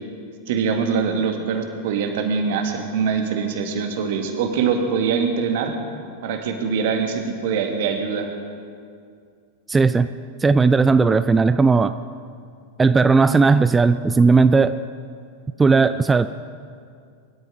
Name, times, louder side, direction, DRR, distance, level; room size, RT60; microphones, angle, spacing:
voice 1, 0.5-5.7 6.2-8.3, right 6 dB, 50° right, 5 dB, 1.8 m, -23 dB
voice 2, 9.7-10.1 10.4-11.9 12.8-14.8 15.6-16.3, right 4 dB, 15° right, 13 dB, 0.3 m, -16 dB
22.5 x 12.5 x 3.9 m, 2.3 s
figure-of-eight pair, 90°, 0 cm